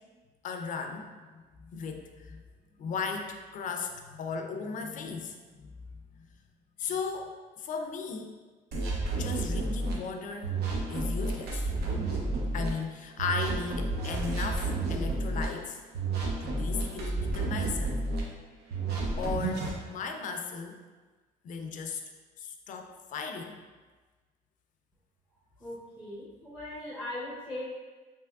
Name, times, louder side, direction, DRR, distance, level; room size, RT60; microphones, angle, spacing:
voice 1, 0.4-2.4 2.8-5.7 6.8-8.3 9.2-10.6 10.9-11.6 12.5-15.9 16.4-18.0 19.2-20.8 21.4-22.0 22.4-23.6, left 5 dB, 50° left, 5 dB, 0.4 m, -36 dB
sound 1, 8.7-9.9 10.4-12.7 13.2-15.4 15.9-18.2 18.7-19.7, right 2 dB, 75° right, 0.7 m, -31 dB
voice 2, 25.6-27.6, left 1 dB, 5° right, -7 dB, 0.6 m, -39 dB
3.3 x 3.0 x 2.3 m, 1.3 s
cardioid pair, 110°, 17 cm